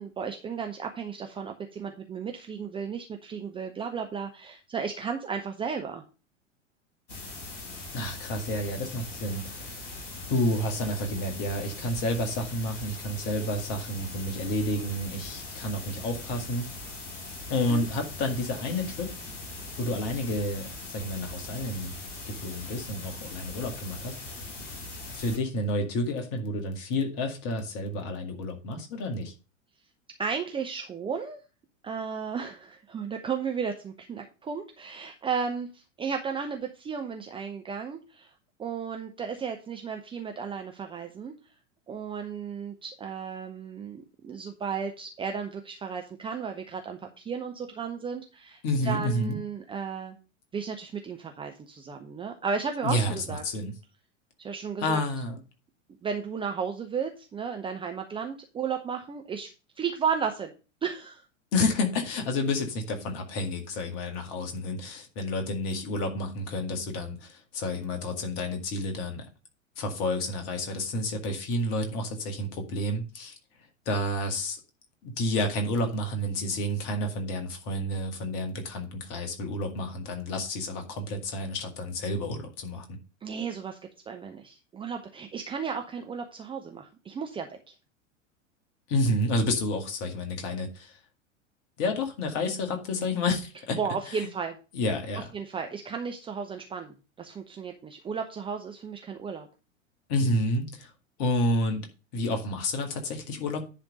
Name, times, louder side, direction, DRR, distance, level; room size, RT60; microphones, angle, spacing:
voice 1, 0.0-6.0 17.7-17.9 30.2-31.4 31.8-38.3 38.6-41.3 41.9-50.2 50.5-53.4 54.4-55.0 56.0-59.5 59.8-60.5 60.8-61.2 83.2-83.8 84.1-87.7 93.8-94.6 95.3-99.5, right 6 dB, 15° right, 0.7 m, -34 dB
sound 1, 7.1-25.4, left 2 dB, 75° left, 2.8 m, -41 dB
voice 2, 7.9-9.9 10.3-16.7 17.5-19.1 19.8-21.9 22.2-24.4 25.1-29.3 48.6-49.4 52.8-53.7 54.8-55.4 61.5-69.3 69.8-73.3 73.9-74.6 75.0-83.0 88.9-91.0 91.8-93.8 94.1-94.3 94.7-95.3 100.1-100.9 101.2-101.9 102.1-103.7, left 1 dB, 40° left, 2.0 m, -30 dB
10.5 x 3.5 x 6.4 m
figure-of-eight pair, 90°, 38 cm